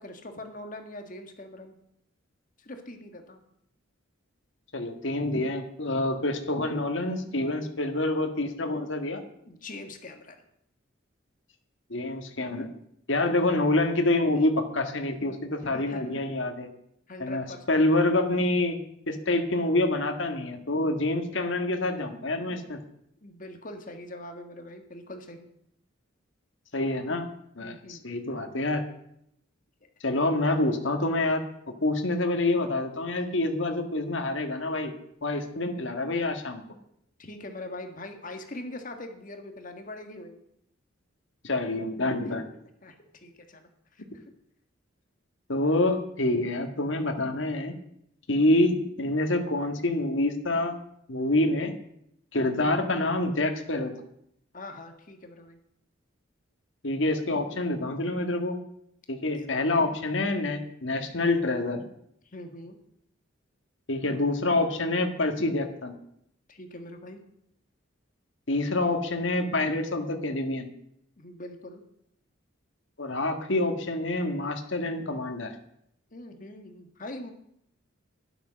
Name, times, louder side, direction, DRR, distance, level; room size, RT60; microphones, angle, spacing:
voice 1, 0.0-1.8 2.6-3.4 9.5-10.4 15.6-16.2 17.1-17.9 23.2-25.5 27.6-28.0 37.2-40.4 42.8-44.2 54.5-55.6 59.3-59.6 62.3-62.7 66.5-67.2 71.2-71.8 76.1-77.3, left 1 dB, 40° left, 5 dB, 1.7 m, -42 dB
voice 2, 4.7-9.2 11.9-12.7 13.1-16.7 17.2-18.8 19.1-22.8 26.7-27.3 27.6-28.8 30.0-31.4 31.8-34.9 35.2-36.6 41.4-42.5 45.5-47.7 48.3-50.8 51.1-51.7 52.3-53.9 56.8-58.6 59.1-61.8 63.9-65.9 68.5-70.7 73.0-75.5, left 2 dB, 65° left, 4 dB, 1.7 m, -27 dB
12.0 x 10.5 x 6.3 m, 0.74 s
head